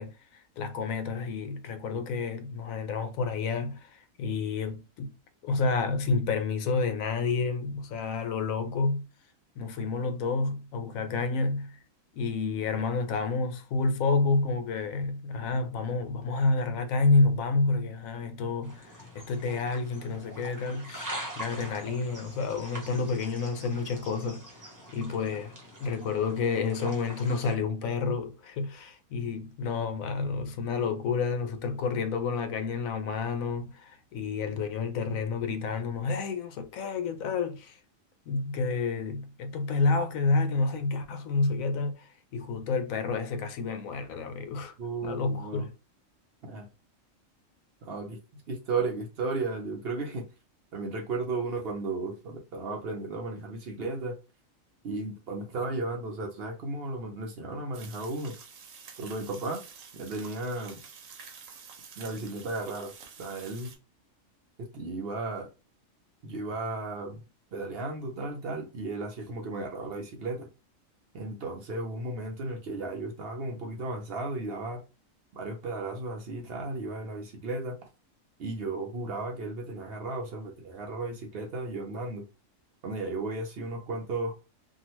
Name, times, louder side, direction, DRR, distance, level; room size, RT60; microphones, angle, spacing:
voice 1, 0.0-5.1 5.4-9.1 9.6-11.8 12.2-24.5 24.9-25.5 25.8-37.8 38.3-44.8 45.0-45.7, left 4 dB, 85° left, 1.0 m, -29 dB
sound 1, 18.6-27.5, right 1 dB, 20° right, 0.5 m, -44 dB
voice 2, 44.8-45.7 46.4-46.7 47.8-50.2 50.7-54.2 54.8-58.3 59.0-59.6 59.9-60.8 62.0-62.9 63.2-63.7 64.6-65.5 66.2-67.2 67.5-70.5 71.1-74.8 75.3-77.8 78.4-82.2 82.8-84.3, right 3 dB, 60° right, 0.7 m, -34 dB
sound 2, 57.7-63.8, right 6 dB, 75° right, 1.0 m, -49 dB
2.8 x 2.4 x 2.9 m
omnidirectional pair, 1.4 m